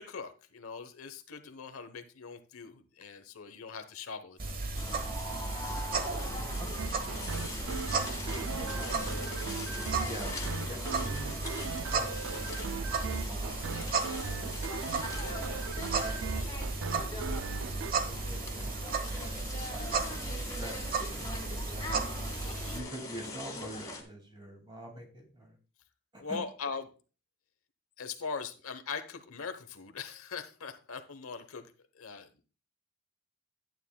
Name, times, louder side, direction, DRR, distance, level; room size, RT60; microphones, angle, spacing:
voice 1, 0.0-5.0 16.3-16.6 22.4-22.8 26.2-26.9 28.0-32.3, left 5 dB, 80° left, 8 dB, 1.0 m, -41 dB
sound 1, 4.4-22.8, right 4 dB, 45° right, 1.1 m, -35 dB
sound 2, 4.7-24.0, left 2 dB, 15° left, 1.9 m, -42 dB
voice 2, 6.6-7.2 8.3-9.0 10.0-10.3 10.6-11.4 11.9-12.2 12.5-15.0 15.2-16.7 17.7-18.8 19.1-22.3 22.7-25.6 26.1-26.4, right 1 dB, 20° right, 2 dB, 2.4 m, -46 dB
sound 3, 6.8-17.9, right 5 dB, 65° right, 0.4 m, -39 dB
11.5 x 9.1 x 2.3 m, 0.34 s
head